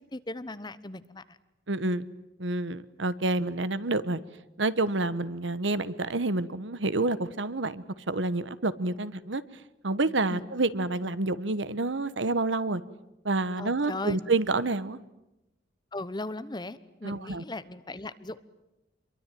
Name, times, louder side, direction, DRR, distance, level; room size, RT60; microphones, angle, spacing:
voice 1, 0.1-1.4 10.3-10.4 13.6-14.2 15.9-18.4, left 2 dB, 25° left, 14 dB, 1.0 m, -38 dB
voice 2, 1.7-2.1 2.4-4.2 4.6-9.4 9.8-12.8 13.2-15.0 17.0-17.4, right 2 dB, 75° right, 15 dB, 1.2 m, -28 dB
27.0 x 23.0 x 9.3 m, 0.92 s
head